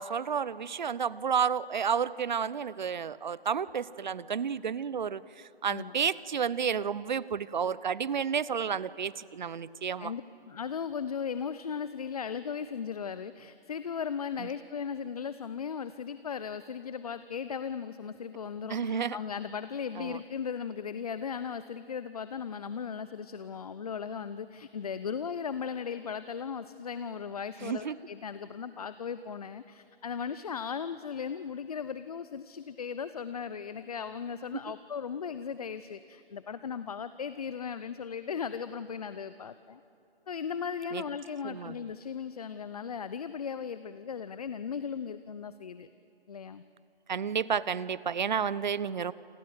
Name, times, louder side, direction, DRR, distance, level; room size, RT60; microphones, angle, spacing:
voice 1, 0.0-5.2 5.6-10.1 18.7-19.2 20.0-20.2 27.6-28.0 40.9-41.0 41.4-41.8 47.1-49.1, right 7 dB, 45° right, 19 dB, 0.7 m, -31 dB
voice 2, 10.0-39.8 40.3-45.9 46.3-46.6, left 6 dB, 40° left, 13 dB, 0.7 m, -37 dB
28.0 x 26.5 x 7.8 m, 2.7 s
figure-of-eight pair, 150°, 31 cm